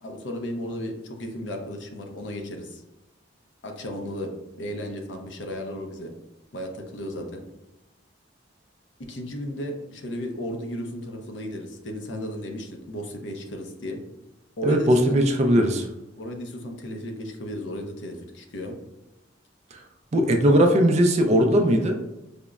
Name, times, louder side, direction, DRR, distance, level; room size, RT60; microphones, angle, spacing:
voice 1, 0.0-2.8 3.6-4.3 4.6-6.1 6.5-7.4 9.1-14.0 14.6-15.2 16.2-18.8, equal, 65° left, 4 dB, 0.5 m, -34 dB
voice 2, 14.6-15.9 20.1-22.0, equal, 35° right, 4 dB, 0.3 m, -19 dB
4.9 x 2.0 x 2.3 m, 0.98 s
head